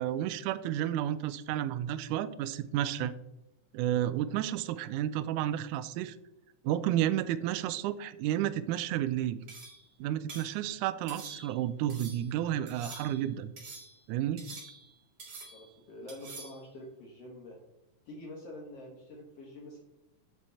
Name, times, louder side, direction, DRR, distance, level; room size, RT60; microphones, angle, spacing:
voice 1, 0.0-3.1 3.7-6.2 6.6-9.4 10.0-13.5 14.1-14.4, right 12 dB, 80° right, 14 dB, 1.9 m, -31 dB
sound 1, 9.5-9.9 10.3-10.6 11.1-11.6 11.9-12.3 12.7-13.3 13.6-14.0 14.4-14.9 15.2-15.7 16.1-16.6, right 3 dB, 45° right, 2.8 m, -47 dB
voice 2, 15.5-17.6 18.1-19.8, left 1 dB, 55° left, -1 dB, 2.3 m, -46 dB
7.5 x 7.0 x 4.2 m, 0.89 s
omnidirectional pair, 3.7 m